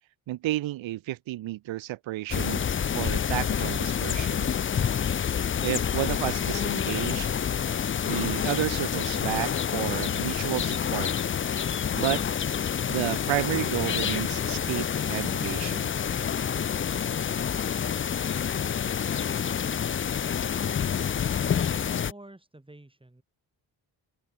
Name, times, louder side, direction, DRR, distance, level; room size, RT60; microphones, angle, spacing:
voice 1, 0.3-2.7 2.9-4.5 5.6-7.3 8.0-11.1 11.9-12.2 12.9-15.9, right 16 dB, 70° right, 0.7 m, -31 dB
sound 1, 2.3-22.1, left 8 dB, 25° left, 0.4 m, -28 dB
voice 2, 21.9-23.2, right 1 dB, 10° right, 1.9 m, -49 dB
open air
supercardioid pair, 45°, 48 cm